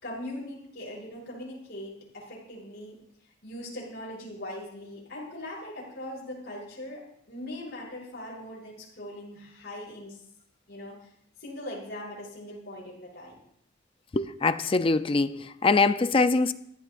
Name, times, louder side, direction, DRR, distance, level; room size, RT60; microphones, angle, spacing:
voice 1, 0.0-3.0 3.4-10.2 10.7-11.0 11.4-13.4, left 1 dB, 50° left, -5 dB, 6.8 m, -40 dB
voice 2, 14.1-16.5, left 3 dB, 25° left, 12 dB, 0.4 m, -23 dB
22.5 x 14.5 x 2.5 m, 0.71 s
head